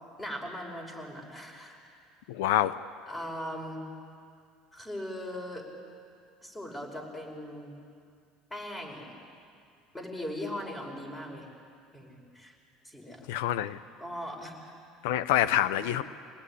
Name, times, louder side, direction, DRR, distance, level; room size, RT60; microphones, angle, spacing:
voice 1, 0.2-1.8 3.1-3.8 4.7-5.7 6.4-7.8 8.5-9.2 9.9-11.5 11.9-12.6 12.8-13.3 14.0-14.7 15.5-16.0, left 1 dB, 15° left, 1 dB, 5.5 m, -39 dB
voice 2, 2.3-2.8 13.3-13.8 15.0-16.0, left 12 dB, 85° left, 15 dB, 0.6 m, -26 dB
26.5 x 18.5 x 9.9 m, 2.3 s
supercardioid pair, 115°, 0 cm